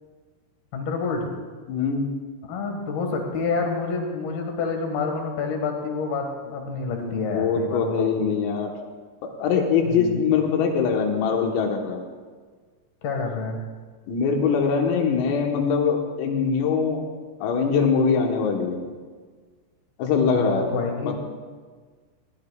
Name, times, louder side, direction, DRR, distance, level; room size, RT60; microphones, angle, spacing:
voice 1, 0.7-1.3 2.5-8.3 9.8-10.2 13.0-13.6 20.3-21.1, left 4 dB, 60° left, 2 dB, 3.0 m, -28 dB
voice 2, 1.7-2.1 7.0-8.7 9.2-12.0 14.1-17.0 17.4-18.9 20.0-20.7 21.0-21.2, left 5 dB, 80° left, 2 dB, 3.9 m, -23 dB
21.5 x 16.0 x 2.4 m, 1.5 s
omnidirectional pair, 5.9 m